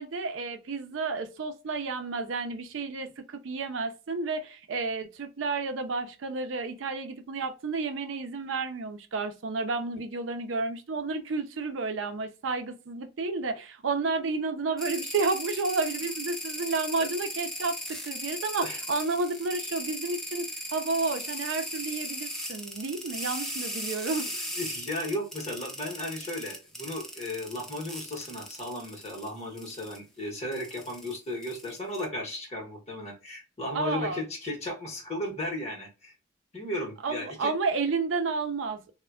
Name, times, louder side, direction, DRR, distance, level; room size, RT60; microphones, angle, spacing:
voice 1, 0.0-24.5 33.7-34.2 37.0-38.9, right 3 dB, 80° right, 0.5 m, -31 dB
sound 1, 14.8-29.3 29.6-30.0 30.5-32.0, equal, ahead, 0.5 m, -37 dB
voice 2, 24.6-36.1 36.5-37.5, left 1 dB, 35° left, 0.9 m, -35 dB
3.2 x 2.1 x 2.2 m
head